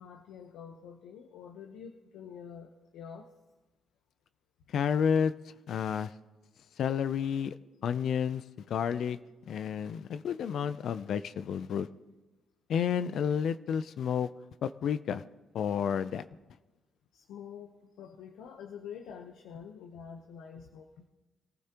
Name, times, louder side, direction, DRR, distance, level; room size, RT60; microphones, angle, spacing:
voice 1, 0.0-3.3 17.1-21.1, left 7 dB, 90° left, 4 dB, 1.0 m, -47 dB
voice 2, 4.7-5.3 5.7-6.1 6.8-7.5 7.8-9.2 9.5-11.9 12.7-14.3 14.6-15.2 15.5-16.2, left 7 dB, 65° left, 13 dB, 0.5 m, -30 dB
23.0 x 15.0 x 3.0 m, 1.2 s
cardioid pair, 90°, 0 cm